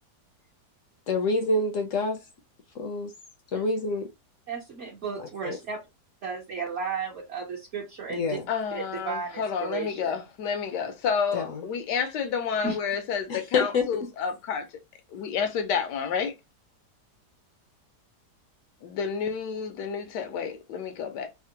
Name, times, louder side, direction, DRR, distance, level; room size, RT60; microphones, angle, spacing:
voice 1, 1.1-2.2 2.7-3.1 3.5-4.1 5.2-5.6 8.1-8.5 11.3-11.6 13.3-14.1, left 3 dB, 65° left, 0.8 m, -27 dB
voice 2, 4.5-5.8 6.2-8.4 8.7-10.2 12.6-12.8, right 5 dB, 55° right, 1.0 m, -34 dB
voice 3, 8.5-14.7 15.1-16.3 18.8-21.3, left 6 dB, 85° left, 1.3 m, -30 dB
3.5 x 2.0 x 2.8 m
omnidirectional pair, 1.8 m